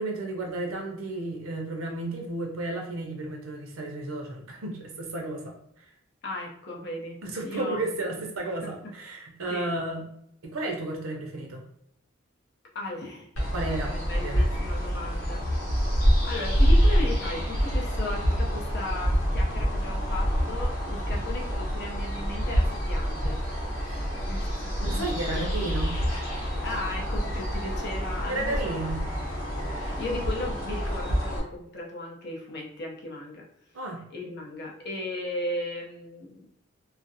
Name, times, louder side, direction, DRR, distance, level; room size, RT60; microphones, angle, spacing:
voice 1, 0.0-5.9 7.2-10.0 10.4-11.6 13.5-13.9 14.2-14.5 23.8-24.1 24.8-26.0 28.3-29.1 33.7-34.0, right 2 dB, 85° right, 1 dB, 0.6 m, -33 dB
voice 2, 6.2-8.0 8.6-8.7 9.5-9.7 12.7-13.3 13.9-15.4 16.2-23.4 24.3-25.7 26.6-33.5 34.1-36.5, left 2 dB, 55° left, -2 dB, 0.6 m, -36 dB
sound 1, 13.4-31.4, equal, 85° left, 0.8 m, -27 dB
2.4 x 2.1 x 2.6 m, 0.74 s
head